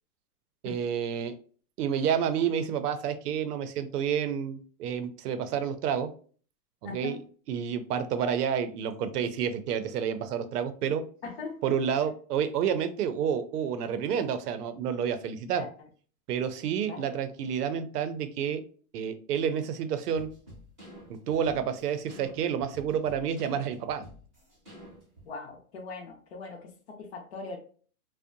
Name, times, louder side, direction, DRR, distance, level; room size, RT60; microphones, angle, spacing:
voice 1, 0.6-1.4 1.8-6.1 6.8-7.2 7.5-11.0 11.6-15.6 16.3-18.6 18.9-20.3 21.1-24.0, right 8 dB, 85° right, 10 dB, 0.6 m, -29 dB
voice 2, 6.8-7.2 11.2-11.6 15.6-15.7 16.9-17.0 25.2-27.6, left 4 dB, 45° left, 1 dB, 0.5 m, -40 dB
sound 1, 20.1-25.3, equal, 10° right, 0.6 m, -49 dB
2.6 x 2.1 x 2.5 m, 0.43 s
hypercardioid pair, 180°, 45 cm